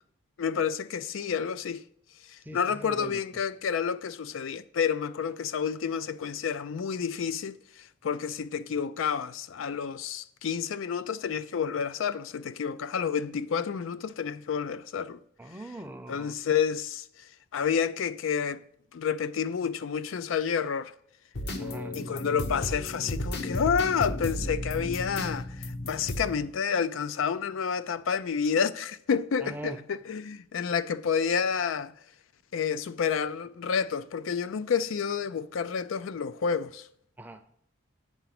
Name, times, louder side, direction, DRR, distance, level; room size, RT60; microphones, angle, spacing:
voice 1, 0.4-1.8 2.3-15.2 16.1-17.1 17.5-18.6 18.9-20.9 21.9-31.9 32.5-36.9, left 6 dB, 80° left, 0.4 m, -29 dB
voice 2, 2.4-3.4 15.4-16.3 21.6-21.9 29.4-29.8 37.2-37.4, right 1 dB, 10° right, 0.5 m, -42 dB
sound 1, 21.3-26.5, left 1 dB, 55° left, 0.8 m, -34 dB
8.1 x 5.7 x 5.9 m
head